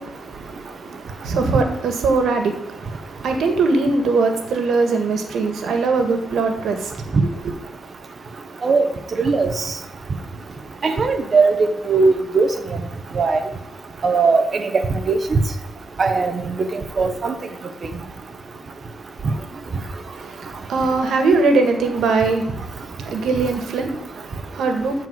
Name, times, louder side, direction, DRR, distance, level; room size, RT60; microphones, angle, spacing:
voice 1, 0.0-7.2 7.4-7.5 20.1-25.1, right 3 dB, 85° right, 1.8 m, -21 dB
voice 2, 9.2-9.5 10.8-12.5 13.1-13.4 14.0-14.7 15.1-15.4 16.0-17.3, right 4 dB, 35° right, 1.1 m, -19 dB
13.5 x 4.7 x 7.7 m
wide cardioid pair, 175°, 0 cm